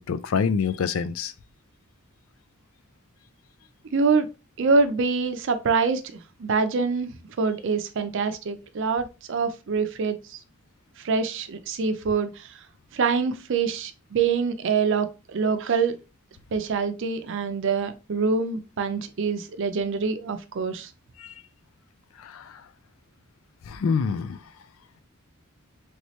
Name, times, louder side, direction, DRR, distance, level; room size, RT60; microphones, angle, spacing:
voice 1, 0.0-1.3 21.2-21.3 22.2-22.6 23.7-24.4, left 6 dB, 70° left, 0.4 m, -26 dB
voice 2, 3.9-4.3 4.6-7.1 7.4-10.4 11.0-12.5 12.9-16.0 16.5-20.9, right 5 dB, 60° right, 0.5 m, -25 dB
3.2 x 3.1 x 2.7 m
head